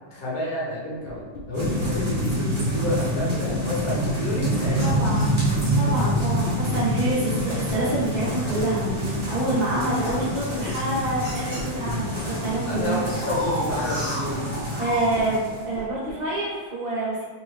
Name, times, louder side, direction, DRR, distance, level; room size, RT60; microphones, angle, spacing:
voice 1, 0.1-5.0 12.7-14.4, left 1 dB, 50° left, -6 dB, 1.5 m, -29 dB
sound 1, 1.0-16.2, left 3 dB, 85° left, 1.4 m, -38 dB
sound 2, 1.5-15.7, right 1 dB, 35° right, 0.4 m, -26 dB
sound 3, 4.7-5.9 6.7-6.9 7.5-12.2 12.5-15.1, equal, 10° left, 1.0 m, -35 dB
voice 2, 4.8-5.4 5.7-13.0 14.8-17.2, right 2 dB, 55° right, -7 dB, 1.7 m, -27 dB
3.8 x 3.0 x 3.0 m, 1.4 s
omnidirectional pair, 2.1 m